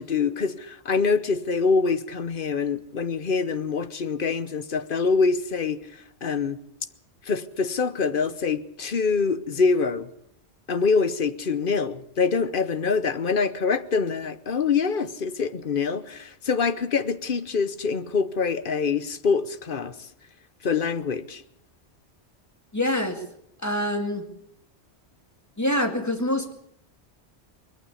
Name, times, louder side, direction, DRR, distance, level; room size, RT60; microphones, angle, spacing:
voice 1, 0.0-5.8 6.2-6.6 7.2-10.1 10.7-20.1 20.6-21.4, left 5 dB, 50° left, 1.1 m, -25 dB
voice 2, 22.7-23.2 23.6-24.2 25.6-26.5, left 1 dB, 15° left, 2.2 m, -25 dB
21.0 x 15.0 x 8.4 m
omnidirectional pair, 1.2 m